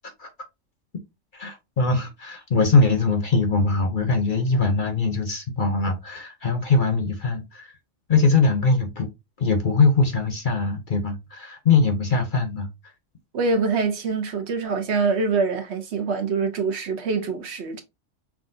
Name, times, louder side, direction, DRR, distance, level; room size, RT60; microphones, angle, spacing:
voice 1, 1.3-7.7 8.1-9.1 9.4-12.7, left 3 dB, 50° left, 0.7 m, -22 dB
voice 2, 13.3-17.8, right 4 dB, 65° right, 1.0 m, -24 dB
5.8 x 2.4 x 2.6 m
omnidirectional pair, 1.3 m